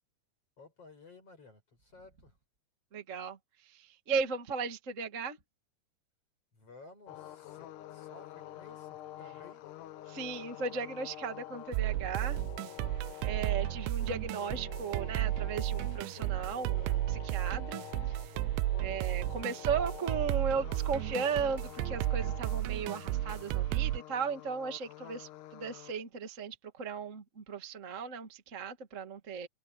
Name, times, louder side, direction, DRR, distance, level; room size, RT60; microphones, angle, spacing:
voice 1, 0.6-2.4 6.5-9.6, left 3 dB, 35° left, 6.3 m, -55 dB
voice 2, 2.9-3.4 3.7-5.4 10.1-12.4 13.2-18.2 18.8-29.5, right 5 dB, 30° right, 1.3 m, -36 dB
sound 1, 7.1-25.9, left 13 dB, 80° left, 1.8 m, -48 dB
sound 2, 11.7-24.0, right 16 dB, 90° right, 2.9 m, -33 dB
omnidirectional pair, 5.1 m